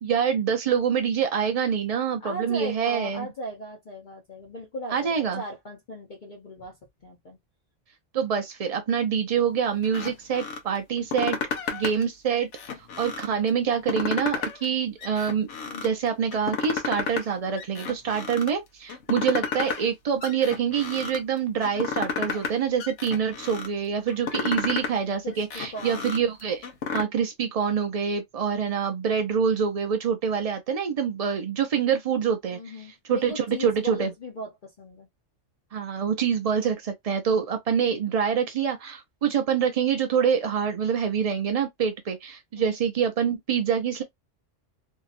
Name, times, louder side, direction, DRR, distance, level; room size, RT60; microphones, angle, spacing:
voice 1, 0.0-3.3 4.9-5.4 8.1-11.4 11.7-15.5 15.8-26.7 26.9-34.1 35.7-44.0, right 7 dB, 65° right, 0.3 m, -26 dB
voice 2, 2.2-6.8 7.0-7.4 15.7-16.0 25.2-26.2 32.5-35.1 37.7-38.0 42.6-42.7, equal, 45° left, 0.9 m, -38 dB
sound 1, 9.8-10.6 11.0-12.0 12.4-13.3 13.7-14.7 15.0-15.9 16.3-17.3 17.6-18.5 18.9-19.9 20.2-21.2 21.6-22.5 22.8-23.7 24.1-25.0 25.3-27.0, left 6 dB, 75° left, 1.1 m, -32 dB
2.8 x 2.7 x 2.4 m
omnidirectional pair, 1.3 m